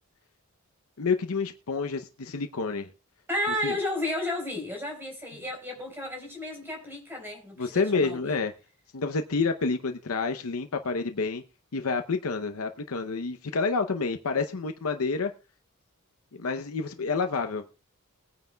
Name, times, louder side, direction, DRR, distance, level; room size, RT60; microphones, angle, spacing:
voice 1, 1.0-2.9 3.6-3.8 7.6-8.5 8.9-11.4 11.7-15.3 16.3-17.8, left 4 dB, 80° left, 0.7 m, -29 dB
voice 2, 3.3-8.4, left 1 dB, 10° right, 4.2 m, -32 dB
21.0 x 9.2 x 2.3 m
head